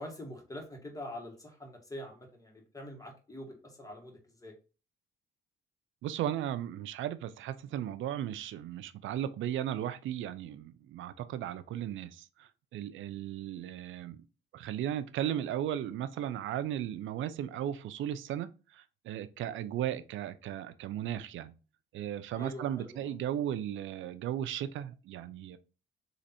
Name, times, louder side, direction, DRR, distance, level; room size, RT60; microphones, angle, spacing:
voice 1, 0.0-4.5 22.4-23.1, left 1 dB, 15° left, 1.8 m, -45 dB
voice 2, 6.0-14.2 14.5-21.5 21.9-25.6, right 11 dB, 75° right, 0.5 m, -36 dB
4.0 x 3.1 x 4.3 m
cardioid pair, 90°, 20 cm